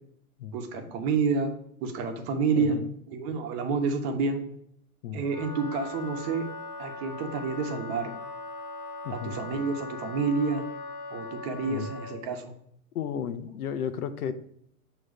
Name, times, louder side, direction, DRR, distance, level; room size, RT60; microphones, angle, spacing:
voice 1, 0.5-1.5 1.8-2.8 3.1-4.4 5.1-6.5 6.8-8.1 9.1-10.6 11.1-12.5, right 4 dB, 45° right, 5 dB, 1.1 m, -29 dB
voice 2, 2.6-2.9 5.0-5.3 9.0-9.4 11.7-11.9 12.9-14.3, left 8 dB, 80° left, 11 dB, 0.8 m, -33 dB
Wind instrument woodwind instrument, 5.2-12.2, left 3 dB, 35° left, 1.1 m, -40 dB
6.3 x 3.1 x 5.0 m, 0.69 s
hypercardioid pair, 125°, 43 cm